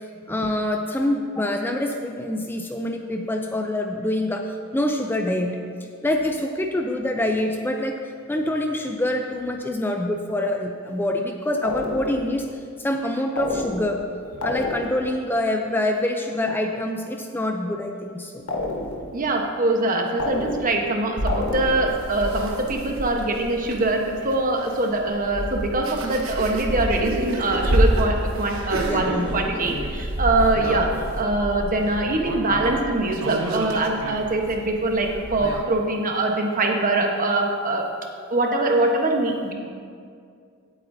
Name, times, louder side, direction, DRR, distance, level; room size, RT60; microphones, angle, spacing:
voice 1, 0.3-5.6 6.0-8.0 8.3-12.5 12.8-14.0 14.4-18.4 28.8-29.3, left 1 dB, 10° left, 3 dB, 0.5 m, -25 dB
sound 1, 11.6-12.4 13.4-14.1 14.4-15.1 18.5-19.2 20.2-20.9 21.3-22.0, left 2 dB, 85° left, 1.2 m, -29 dB
voice 2, 19.1-30.9 31.1-37.8 38.3-39.5, right 2 dB, 40° right, 2 dB, 1.1 m, -23 dB
sound 2, 21.2-35.6, right 1 dB, 80° right, 1.1 m, -28 dB
17.0 x 8.4 x 2.7 m, 2.2 s
head